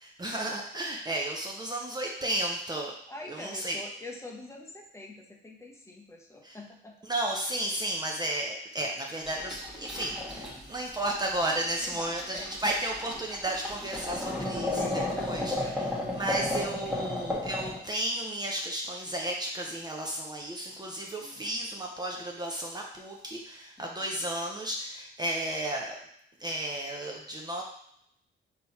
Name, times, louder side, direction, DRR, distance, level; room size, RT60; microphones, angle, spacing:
voice 1, 0.0-2.9 3.3-3.8 6.4-6.6 7.0-14.9 15.1-26.0 26.4-27.6, right 1 dB, 20° right, -1 dB, 0.6 m, -33 dB
voice 2, 3.1-6.9 11.8-12.5 14.8-15.8 21.2-21.4 23.8-24.1, left 2 dB, 15° left, 0 dB, 0.8 m, -45 dB
sound 1, 9.2-17.8, left 1 dB, 5° right, 1.4 m, -33 dB
3.7 x 2.9 x 4.2 m, 0.73 s
cardioid pair, 90°, 20 cm